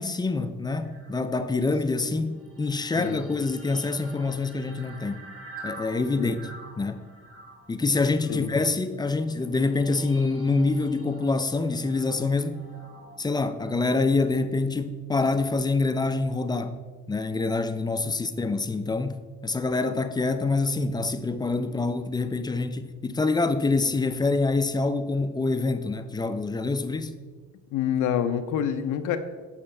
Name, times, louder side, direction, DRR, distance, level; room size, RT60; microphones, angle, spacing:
voice 1, 0.0-5.3 5.6-6.4 6.8-7.1 7.7-12.6 13.2-16.8 17.1-27.2, left 3 dB, 15° left, 0.3 m, -26 dB
sound 1, 0.8-14.6, right 2 dB, 45° right, 1.7 m, -48 dB
voice 2, 27.7-29.2, left 9 dB, 80° left, 0.5 m, -27 dB
7.0 x 4.9 x 3.2 m
cardioid pair, 90°, 30 cm